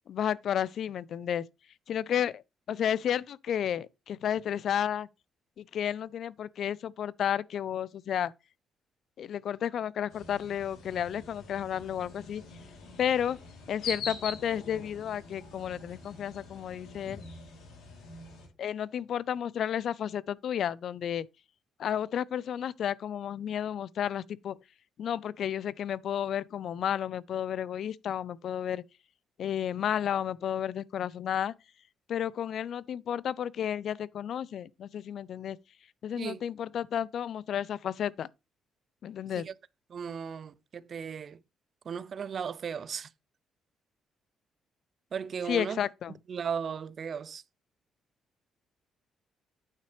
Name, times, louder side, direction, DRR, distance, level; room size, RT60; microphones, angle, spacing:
voice 1, 0.1-1.5 1.9-2.4 2.7-5.1 5.6-8.3 9.2-12.4 13.0-13.4 13.7-17.2 18.6-21.3 21.8-24.5 25.0-28.8 29.4-31.5 32.1-35.6 36.0-38.3 39.0-39.5 45.5-46.1, left 9 dB, 65° left, 0.4 m, -32 dB
sound 1, 10.1-18.5, left 4 dB, 85° left, 2.9 m, -44 dB
voice 2, 39.9-41.4 41.9-43.1 45.1-45.8 46.3-47.4, right 7 dB, 50° right, 0.4 m, -36 dB
9.2 x 5.6 x 3.2 m
cardioid pair, 90°, 0 cm